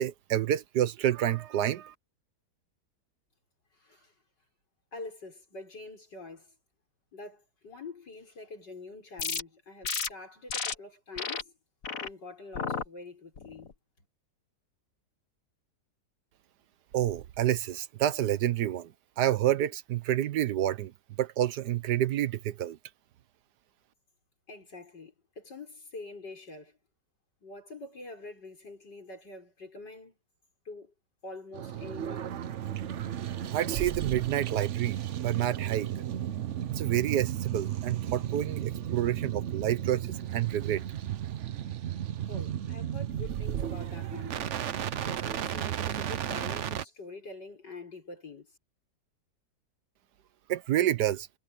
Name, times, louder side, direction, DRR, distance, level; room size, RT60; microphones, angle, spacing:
voice 1, 0.0-1.9 16.9-18.9 19.2-20.9 21.2-22.8 33.5-35.9 36.7-40.8 50.5-51.3, right 12 dB, 70° right, 1.4 m, -29 dB
voice 2, 3.7-4.1 4.9-6.6 7.1-11.5 12.0-13.7 14.0-14.1 24.5-26.8 27.4-30.2 30.7-30.9 31.2-32.3 42.3-44.6 45.1-48.5, left 3 dB, 80° left, 6.9 m, -45 dB
sound 1, 9.2-9.4 9.8-10.1 10.5-10.7 11.2-11.4 11.8-12.1 12.5-12.9 13.4-13.7, left 5 dB, 50° left, 2.0 m, -33 dB
sound 2, 31.5-46.8, right 10 dB, 55° right, 0.9 m, -34 dB
omnidirectional pair, 1.8 m